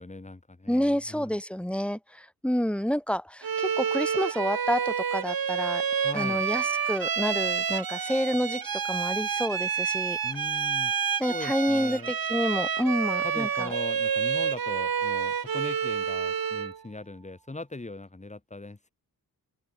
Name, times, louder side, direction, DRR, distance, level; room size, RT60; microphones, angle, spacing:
voice 1, 0.0-1.3 6.0-6.4 10.2-10.9 11.3-12.1 13.2-18.9, left 2 dB, 20° left, 5.5 m, -40 dB
voice 2, 0.7-5.8 6.1-10.2 11.2-13.7, equal, 5° left, 1.7 m, -29 dB
Bowed string instrument, 3.4-16.8, right 7 dB, 70° right, 4.0 m, -29 dB
wide cardioid pair, 170°, 37 cm